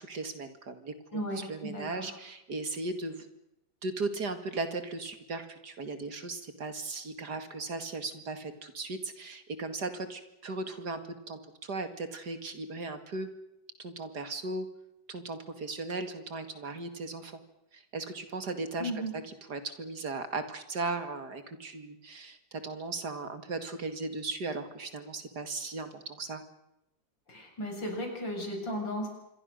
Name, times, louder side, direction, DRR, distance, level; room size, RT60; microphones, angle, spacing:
voice 1, 0.0-3.3 3.8-13.3 13.8-14.7 15.1-17.4 17.7-26.4, right 3 dB, 55° right, 9 dB, 2.7 m, -37 dB
voice 2, 1.1-2.1 18.8-19.1 27.3-29.1, equal, 70° left, 2 dB, 8.0 m, -35 dB
26.5 x 23.5 x 6.6 m, 0.86 s
omnidirectional pair, 2.1 m